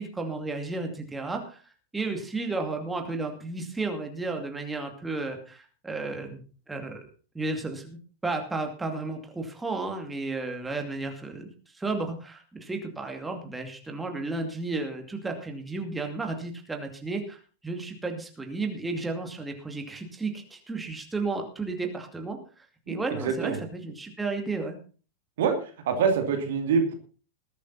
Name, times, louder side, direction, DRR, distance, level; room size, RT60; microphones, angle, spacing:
voice 1, 0.0-1.6 1.9-6.4 6.7-7.0 7.3-24.8, right 3 dB, 10° right, 4 dB, 2.5 m, -33 dB
voice 2, 23.2-23.6 25.4-26.9, right 6 dB, 60° right, 5 dB, 2.6 m, -25 dB
20.5 x 8.3 x 4.2 m, 0.38 s
figure-of-eight pair, 90°, 0 cm